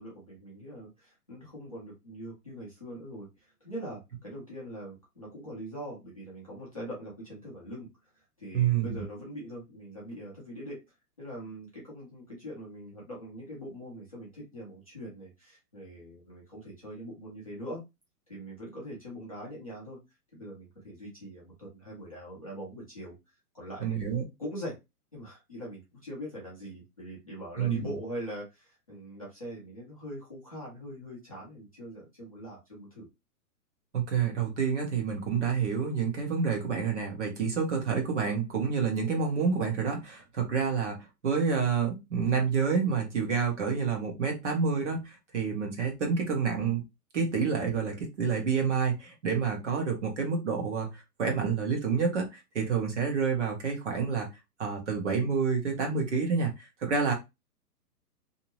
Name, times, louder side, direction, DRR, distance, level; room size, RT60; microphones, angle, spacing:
voice 1, 0.0-7.9 8.1-10.8 11.2-17.8 18.3-20.0 20.3-24.1 24.4-24.8 25.1-33.1, equal, 25° left, -7 dB, 0.6 m, -42 dB
voice 2, 8.5-9.0 23.8-24.2 27.6-27.9 33.9-46.8 47.1-54.3 54.6-57.1, right 6 dB, 50° right, 2 dB, 1.0 m, -28 dB
2.6 x 2.0 x 2.8 m, 0.22 s
hypercardioid pair, 180°, 47 cm